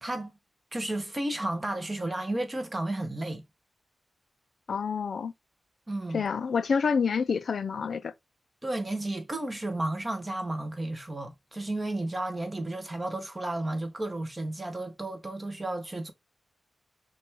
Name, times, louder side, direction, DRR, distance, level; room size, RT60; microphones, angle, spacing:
voice 1, 0.0-0.3 0.7-3.4 5.9-6.2 8.6-16.1, right 1 dB, 20° right, 0.8 m, -32 dB
voice 2, 4.7-5.3 6.1-8.1, left 5 dB, 60° left, 0.4 m, -28 dB
5.8 x 2.3 x 3.2 m
wide cardioid pair, 175°, 0 cm